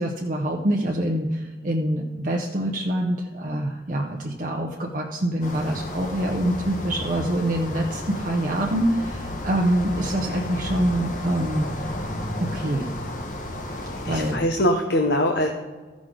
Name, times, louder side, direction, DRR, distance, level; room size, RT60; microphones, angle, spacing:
voice 1, 0.0-11.7 12.4-12.9 14.1-14.4, right 1 dB, 45° right, 0 dB, 0.8 m, -25 dB
sound 1, 5.4-14.4, left 1 dB, 45° left, 1.1 m, -33 dB
voice 2, 13.7-15.5, left 1 dB, 70° left, 3 dB, 0.9 m, -23 dB
14.5 x 6.2 x 3.8 m, 1.3 s
head